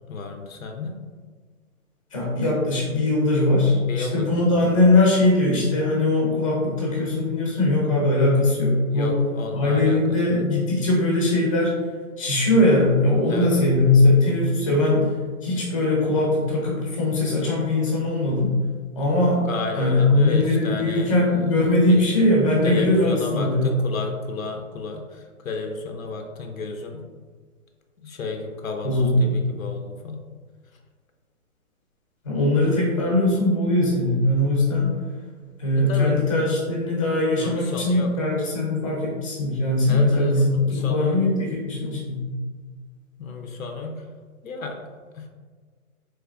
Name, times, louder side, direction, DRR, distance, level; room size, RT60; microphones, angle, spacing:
voice 1, 0.1-1.0 3.9-4.8 8.9-10.4 13.3-13.7 19.4-22.1 22.6-27.0 28.0-30.2 35.7-36.2 37.4-38.1 39.9-41.2 43.2-44.1 44.4-44.8 45.1-45.3, left 3 dB, 70° left, 3 dB, 0.6 m, -32 dB
voice 2, 2.1-9.1 9.5-11.7 12.2-15.1 15.4-18.5 18.9-19.4 19.7-23.7 28.8-29.4 32.2-34.9 35.6-42.2, left 2 dB, 25° left, -4 dB, 0.6 m, -20 dB
3.4 x 3.2 x 2.3 m, 1.5 s
hypercardioid pair, 160°, 43 cm